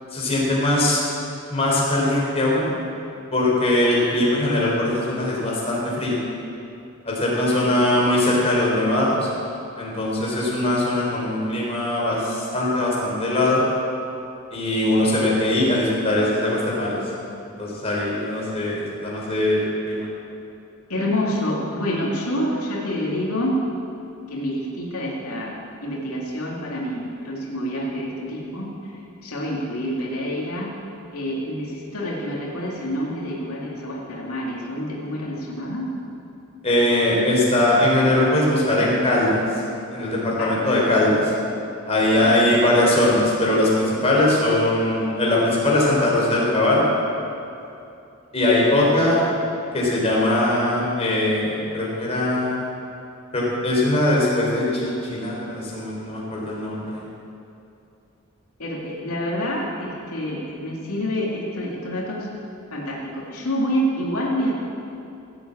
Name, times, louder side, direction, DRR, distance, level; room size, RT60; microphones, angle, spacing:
voice 1, 0.1-1.0 1.5-2.7 3.3-6.2 7.1-9.3 9.8-13.6 14.5-17.0 17.6-20.1 36.6-39.4 39.9-41.3 41.9-46.8 48.3-49.2 49.7-52.6 53.3-57.0, left 1 dB, 30° left, -4 dB, 4.0 m, -21 dB
voice 2, 7.5-8.0 20.9-23.6 24.3-25.6 25.8-28.7 29.2-30.7 31.1-35.9 40.4-40.7 42.2-42.6 58.6-62.3 62.7-64.5, equal, 90° left, -3 dB, 2.5 m, -27 dB
17.0 x 8.0 x 8.6 m, 2.7 s
head